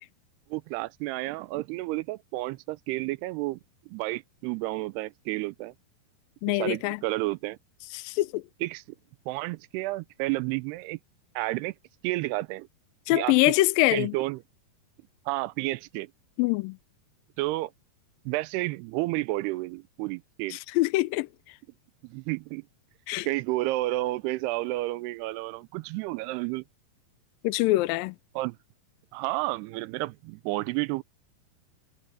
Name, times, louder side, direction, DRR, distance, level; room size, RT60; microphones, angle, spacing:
voice 1, 0.5-3.6 3.9-5.7 6.5-7.6 8.6-8.8 9.3-11.0 11.4-11.7 12.0-12.7 13.1-13.5 13.9-14.4 15.3-16.1 17.4-17.7 18.3-20.6 22.0-22.6 23.3-26.6 28.4-28.6 29.1-31.0, right 19 dB, 85° right, 2.6 m, -31 dB
voice 2, 6.4-7.0 7.9-8.4 13.1-14.1 16.4-16.8 20.5-21.3 23.1-23.3 27.4-28.1, left 19 dB, 85° left, 2.0 m, -24 dB
omnidirectional pair, 4.6 m